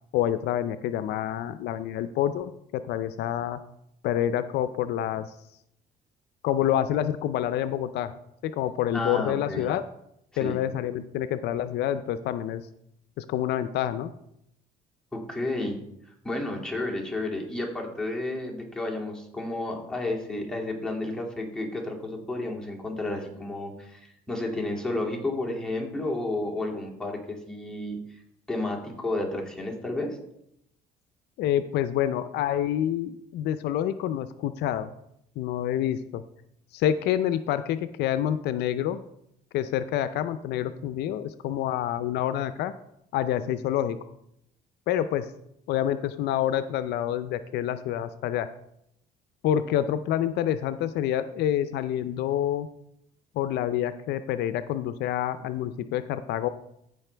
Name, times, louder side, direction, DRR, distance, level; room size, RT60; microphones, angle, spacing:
voice 1, 0.1-3.6 4.0-5.3 6.4-8.1 8.4-9.8 10.4-12.6 13.2-14.1 31.4-34.9 35.4-36.2 36.7-39.0 39.5-42.7 43.1-44.0 44.9-45.3 45.7-48.5 49.4-52.7 53.4-56.5, left 11 dB, 80° left, 12 dB, 0.5 m, -27 dB
voice 2, 8.9-9.7 10.3-10.6 15.1-15.8 16.0-28.2 28.5-30.2, left 2 dB, 5° left, -2 dB, 2.3 m, -31 dB
15.0 x 5.3 x 3.3 m, 0.77 s
cardioid pair, 110°, 17 cm